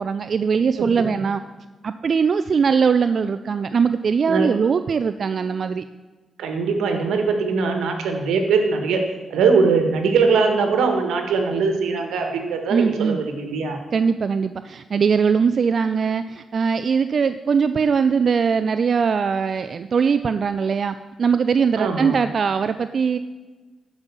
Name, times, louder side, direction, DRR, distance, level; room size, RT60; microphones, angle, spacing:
voice 1, 0.0-1.4 1.8-5.8 12.7-13.2 13.9-23.2, right 6 dB, 55° right, 11 dB, 0.4 m, -21 dB
voice 2, 0.7-1.1 4.3-4.5 6.4-9.0 9.3-13.8 21.8-22.2, right 4 dB, 85° right, 5 dB, 1.5 m, -21 dB
11.0 x 5.3 x 7.0 m, 1.3 s
cardioid pair, 70°, 0 cm